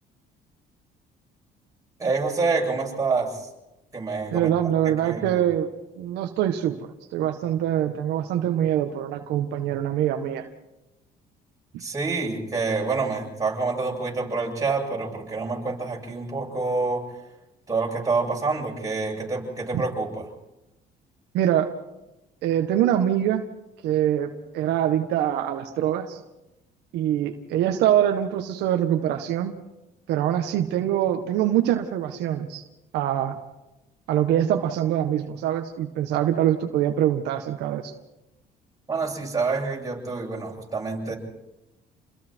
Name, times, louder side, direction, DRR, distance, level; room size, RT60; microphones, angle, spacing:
voice 1, 2.0-3.5 3.9-4.5 4.8-5.4 11.8-17.0 17.7-20.3 38.9-41.2, right 4 dB, 20° right, -2 dB, 8.0 m, -27 dB
voice 2, 4.3-5.7 6.0-10.5 11.7-11.8 19.7-19.8 21.3-21.7 22.4-23.5 23.8-26.2 26.9-29.5 30.1-32.6 32.9-33.4 34.1-37.9, right 11 dB, 85° right, 5 dB, 1.6 m, -24 dB
29.0 x 21.5 x 4.7 m, 0.95 s
cardioid pair, 110°, 17 cm